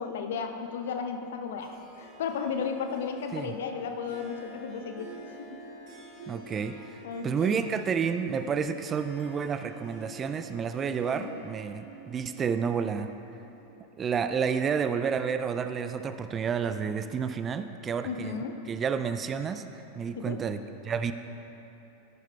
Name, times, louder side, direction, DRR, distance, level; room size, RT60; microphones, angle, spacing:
voice 1, 0.0-5.1 5.4-5.6 6.4-6.5 7.0-7.6 8.6-8.7 10.9-11.4 18.0-18.6 20.2-20.4, left 6 dB, 60° left, 6 dB, 0.7 m, -34 dB
Harp, 1.6-13.8, right 2 dB, 40° right, 1.9 m, -49 dB
voice 2, 6.3-6.8 7.2-13.1 14.0-18.4 18.7-19.7 20.0-21.1, right 6 dB, 25° right, 10 dB, 0.3 m, -30 dB
13.5 x 10.5 x 2.3 m, 3.0 s
figure-of-eight pair, 90°, 0 cm